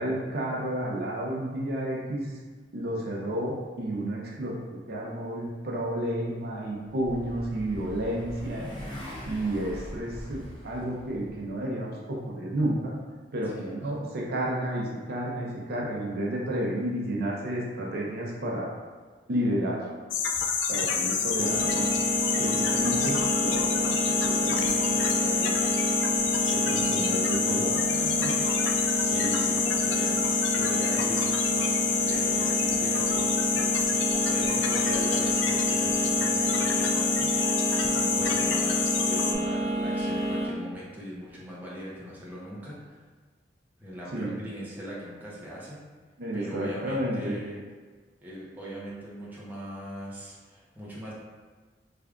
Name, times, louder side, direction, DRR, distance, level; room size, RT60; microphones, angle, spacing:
voice 1, 0.0-2.4 2.7-8.7 9.2-12.9 13.3-18.7 19.3-19.8 20.7-21.9 22.4-25.6 26.5-28.3 44.1-44.4 46.2-47.4, right 1 dB, 60° right, -3 dB, 0.6 m, -31 dB
Motorcycle, 6.5-11.5, equal, 25° left, 1.1 m, -42 dB
voice 2, 8.6-9.0 13.5-14.0 21.5-21.8 29.0-37.4 37.9-43.0 43.8-45.8 46.3-47.6 48.2-51.1, equal, 10° right, -7 dB, 0.7 m, -40 dB
sound 1, 20.1-39.3, left 6 dB, 85° left, 0.4 m, -27 dB
sound 2, 21.4-40.5, right 1 dB, 40° right, 0.9 m, -29 dB
3.3 x 2.4 x 3.6 m, 1.4 s
head